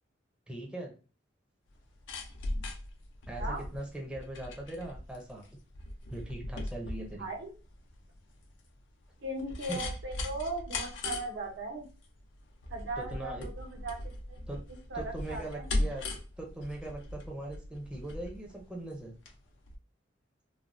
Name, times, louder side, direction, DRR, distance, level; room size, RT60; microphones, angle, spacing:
voice 1, 0.5-1.0 3.3-5.4 6.1-7.3 9.7-9.9 13.0-13.5 14.5-14.6 14.9-16.1 16.4-19.2, right 1 dB, 5° right, -1 dB, 0.6 m, -40 dB
sound 1, 1.7-19.4 19.7-19.8, left 2 dB, 75° left, 0.6 m, -39 dB
voice 2, 7.2-7.5 9.2-11.9 12.7-14.0 14.3-14.4 14.9-15.7, right 2 dB, 65° right, 2 dB, 0.8 m, -38 dB
3.1 x 2.1 x 2.5 m, 0.34 s
head